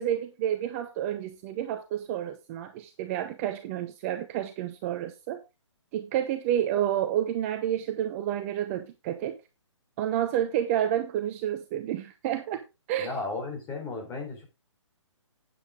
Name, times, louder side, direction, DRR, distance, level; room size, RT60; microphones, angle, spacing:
voice 1, 0.0-5.4 5.9-9.3 10.0-12.6 12.9-13.1, right 11 dB, 25° right, 0.8 m, -29 dB
voice 2, 13.0-14.4, left 3 dB, 20° left, 3.9 m, -34 dB
9.0 x 8.9 x 3.7 m
hypercardioid pair, 145°, 16 cm